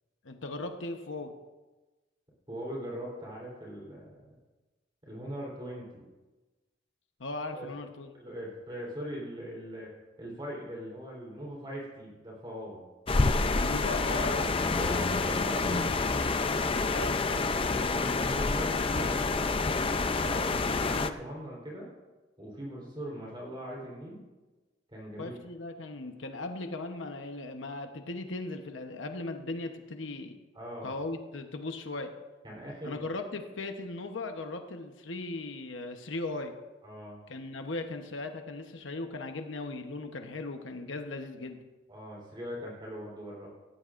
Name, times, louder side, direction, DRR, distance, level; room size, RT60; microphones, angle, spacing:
voice 1, 0.2-1.3 7.2-8.1 13.5-14.5 16.9-17.2 25.2-30.4 30.8-32.1 32.8-36.6 37.3-41.6, left 2 dB, 90° left, 5 dB, 1.0 m, -38 dB
voice 2, 2.5-4.3 5.1-6.1 7.5-7.7 8.1-9.9 10.2-12.8 13.6-14.4 14.7-15.9 16.3-16.7 17.6-19.6 19.9-21.9 22.4-24.2 24.9-25.3 30.5-31.0 32.4-33.0 36.8-37.2 41.9-43.5, equal, 25° right, -4 dB, 3.7 m, -41 dB
sound 1, 13.1-21.1, left 3 dB, 30° left, 0.5 m, -28 dB
19.0 x 15.5 x 2.6 m, 1.2 s
head